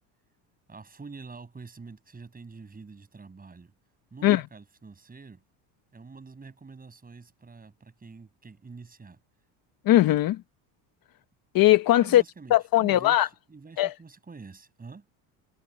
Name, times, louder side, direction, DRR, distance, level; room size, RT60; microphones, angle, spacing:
voice 1, 0.7-3.7 4.1-5.4 5.9-9.2 12.0-15.1, right 4 dB, 20° right, 6.3 m, -46 dB
voice 2, 9.8-10.4 11.5-12.2 12.5-13.3 13.8-13.9, left 14 dB, 50° left, 1.0 m, -19 dB
cardioid pair, 125°, 45 cm